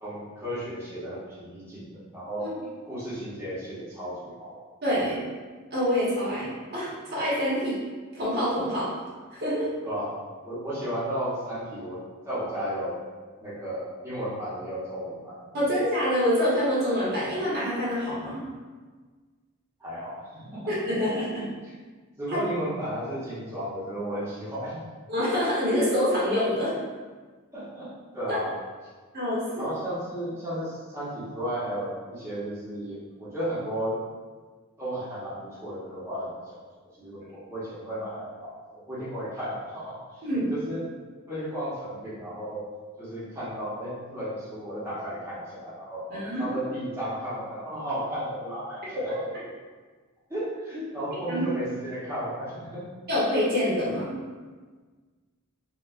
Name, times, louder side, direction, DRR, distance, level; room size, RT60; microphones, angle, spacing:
voice 1, 0.0-2.5 2.8-4.6 9.8-10.2 10.4-13.0 13.4-15.5 19.8-20.7 21.3-21.5 22.2-24.8 27.5-28.6 29.6-34.0 34.8-36.6 37.0-40.8 41.3-42.7 43.0-49.3 50.3-52.9, equal, 10° right, -11 dB, 1.0 m, -34 dB
voice 2, 4.8-5.2 5.7-7.8 8.1-9.0 9.3-9.7 15.5-18.4 20.7-21.4 22.3-22.4 25.1-26.8 28.3-28.4 29.1-29.7 40.2-40.5 46.1-46.5 51.3-51.4 53.1-54.2, equal, 50° right, -7 dB, 1.1 m, -26 dB
4.5 x 2.4 x 2.5 m, 1.4 s
head